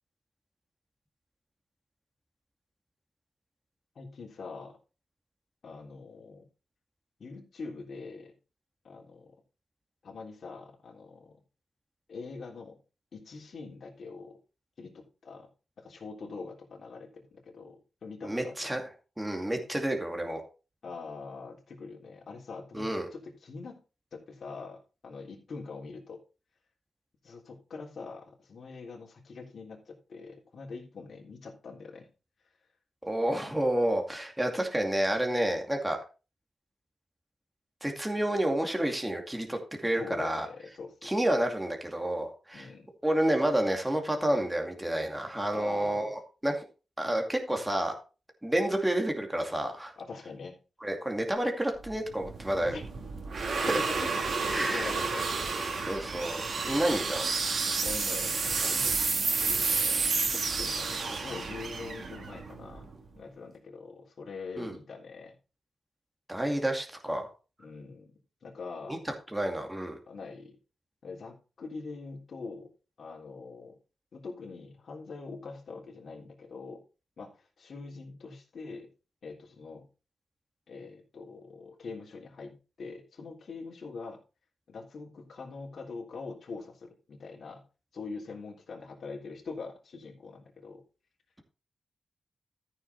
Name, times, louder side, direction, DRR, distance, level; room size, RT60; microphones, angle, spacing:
voice 1, 3.9-4.8 5.6-6.4 7.2-8.3 8.8-9.3 10.0-11.4 12.1-12.8 13.1-14.4 14.8-15.5 15.8-17.2 17.5-18.5 20.8-23.8 24.1-26.2 27.2-32.1 39.9-41.1 42.5-42.9 45.5-46.1 50.0-50.6 52.6-52.8 53.8-54.1 54.6-55.5 57.8-62.9 63.1-65.3 67.6-68.1 68.4-69.0 70.1-70.6 71.0-72.7 73.0-73.7 74.1-76.8 77.2-78.9 79.2-79.9 80.7-84.2 84.7-87.6 87.9-90.8, left 4 dB, 60° left, -2 dB, 3.4 m, -43 dB
voice 2, 18.2-18.8 19.2-20.4 22.7-23.1 33.1-36.0 37.8-40.5 41.0-42.7 43.0-46.7 47.0-47.9 48.4-49.9 50.8-52.8 53.3-53.8 54.5-54.9 55.8-57.3 64.6-64.7 66.3-67.3 68.9-69.0 69.3-70.0, right 1 dB, 10° right, 3 dB, 2.3 m, -29 dB
sound 1, 51.8-63.1, right 4 dB, 65° right, 2.6 m, -31 dB
13.5 x 6.5 x 4.1 m, 0.32 s
wide cardioid pair, 125°, 0 cm